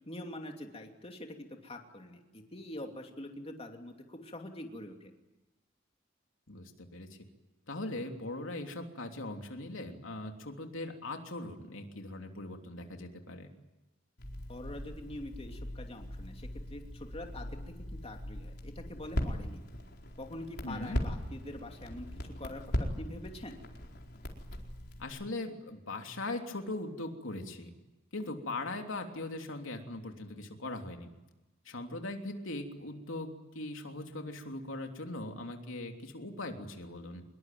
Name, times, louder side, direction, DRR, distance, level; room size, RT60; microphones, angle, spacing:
voice 1, 0.1-5.1 14.5-19.6 20.2-23.6, left 1 dB, 30° left, 3 dB, 2.9 m, -45 dB
voice 2, 6.5-7.1 7.7-13.5 20.6-21.0 25.0-27.7 28.1-31.1 31.6-37.2, left 2 dB, 85° left, 3 dB, 3.2 m, -40 dB
Crackle, 14.2-25.0, equal, 55° left, 4.5 m, -39 dB
25.5 x 22.0 x 9.3 m, 1.0 s
head